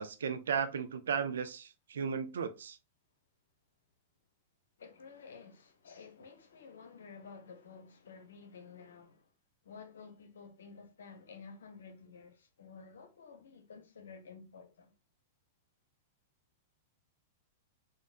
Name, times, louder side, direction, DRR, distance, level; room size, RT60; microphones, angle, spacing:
voice 1, 0.0-2.8, right 6 dB, 70° right, 0.5 m, -35 dB
voice 2, 4.8-9.3 9.6-14.9, left 5 dB, 70° left, 0.8 m, -52 dB
3.9 x 2.5 x 2.5 m
figure-of-eight pair, 100°, 0 cm